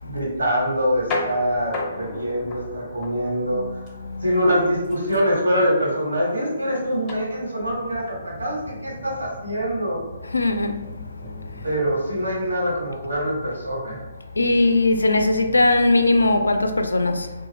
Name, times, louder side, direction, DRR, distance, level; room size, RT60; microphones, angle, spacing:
voice 1, 0.0-3.8 4.2-10.0 11.6-14.0, equal, 85° right, 1.2 m, -24 dB
sound 1, 0.7-16.8, left 2 dB, 25° left, 0.6 m, -38 dB
voice 2, 10.2-10.8 14.4-17.3, left 2 dB, 80° left, 0.3 m, -19 dB
2.7 x 2.3 x 3.0 m
figure-of-eight pair, 130°, 0 cm